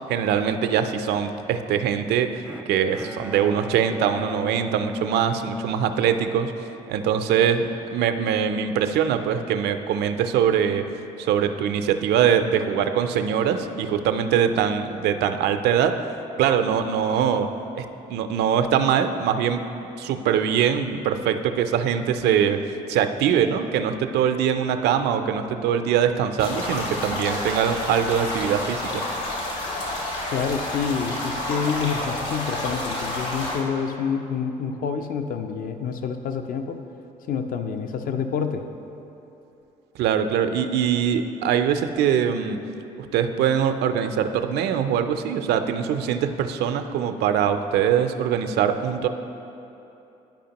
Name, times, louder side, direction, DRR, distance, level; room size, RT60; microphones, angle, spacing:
voice 1, 0.1-6.5 6.9-10.8 11.2-15.9 16.4-17.5 17.8-17.9 18.1-19.7 20.0-22.6 22.9-29.0 40.0-42.6 43.1-49.1, right 8 dB, 70° right, 8 dB, 0.4 m, -22 dB
Bowed string instrument, 2.5-6.7, equal, 5° right, 0.3 m, -37 dB
sound 1, 26.4-33.6, left 1 dB, 70° left, 1.6 m, -29 dB
voice 2, 30.3-36.8 37.3-38.6, left 6 dB, 50° left, 7 dB, 0.5 m, -28 dB
10.5 x 5.0 x 2.9 m, 2.9 s
hypercardioid pair, 55°, 18 cm